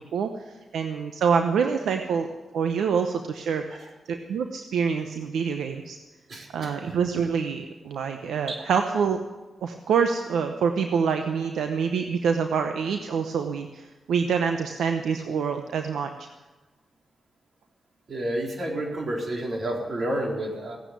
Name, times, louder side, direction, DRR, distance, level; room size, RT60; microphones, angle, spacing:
voice 1, 0.1-2.3 2.5-6.0 6.5-9.2 9.6-16.1, right 6 dB, 90° right, 6 dB, 0.8 m, -26 dB
voice 2, 6.3-6.7 8.5-8.6 18.1-20.8, right 1 dB, 60° right, 0 dB, 4.0 m, -30 dB
16.5 x 9.2 x 9.4 m, 1.2 s
cardioid pair, 55°, 0 cm